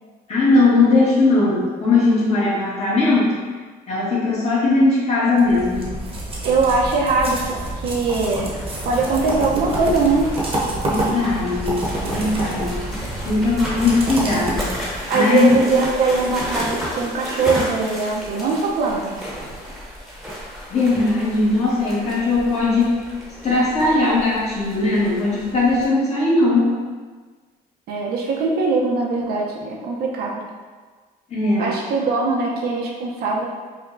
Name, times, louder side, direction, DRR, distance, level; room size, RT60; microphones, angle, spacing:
voice 1, 0.3-3.4 3.9-5.9 10.8-15.6 20.7-23.0 23.4-26.8 31.3-31.7, left 3 dB, 40° left, -7 dB, 1.5 m, -19 dB
sound 1, 5.4-15.1, right 1 dB, 35° right, 1.0 m, -28 dB
voice 2, 6.4-8.5 8.8-10.3 15.1-19.3 27.9-30.4 31.6-33.5, right 4 dB, 65° right, -2 dB, 0.7 m, -21 dB
sound 2, 8.4-25.8, equal, ahead, 1.1 m, -33 dB
5.0 x 2.3 x 2.6 m, 1.4 s
cardioid pair, 110°, 17 cm